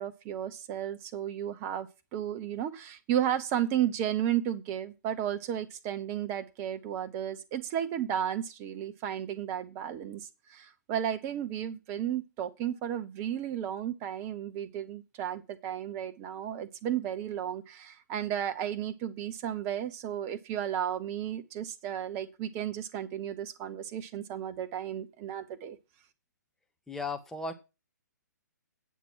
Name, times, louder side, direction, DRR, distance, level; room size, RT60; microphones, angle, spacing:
voice 1, 0.0-25.8, right 10 dB, 25° right, 10 dB, 1.0 m, -33 dB
voice 2, 26.9-27.5, left 3 dB, 5° left, 5 dB, 1.1 m, -35 dB
9.3 x 6.1 x 7.5 m, 0.28 s
figure-of-eight pair, 130°, 10 cm